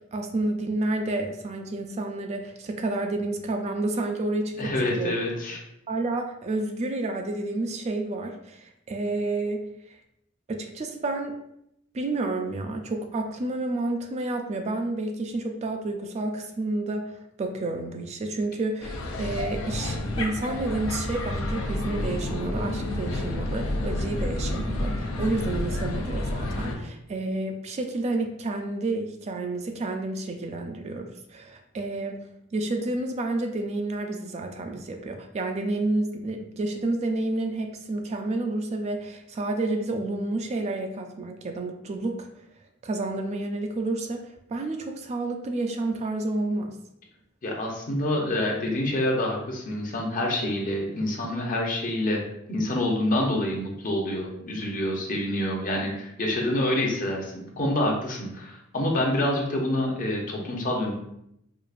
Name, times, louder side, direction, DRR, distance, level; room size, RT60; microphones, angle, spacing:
voice 1, 0.1-5.2 5.9-9.6 10.5-11.4 11.9-32.2 32.5-42.3 42.8-46.8, right 2 dB, 35° right, 4 dB, 0.3 m, -30 dB
voice 2, 4.6-5.6 47.4-52.2 52.5-60.9, left 1 dB, 40° left, 0 dB, 0.7 m, -27 dB
sound 1, 18.8-26.8, left 1 dB, 80° left, 0.5 m, -30 dB
4.7 x 2.4 x 2.4 m, 0.79 s
head